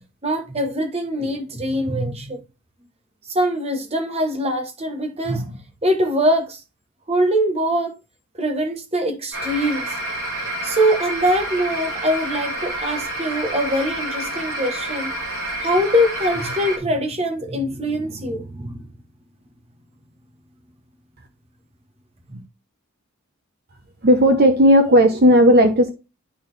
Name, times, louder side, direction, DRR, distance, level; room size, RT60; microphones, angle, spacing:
voice 1, 0.2-2.4 3.3-6.6 7.1-8.0 8.4-10.0 10.6-15.1 15.6-18.8 22.3-22.4, equal, 30° right, 1.2 m, -23 dB
sound 1, 9.3-16.8, right 1 dB, 65° right, 3.1 m, -28 dB
voice 2, 24.0-25.9, equal, 45° right, 0.9 m, -13 dB
11.0 x 4.0 x 3.3 m
head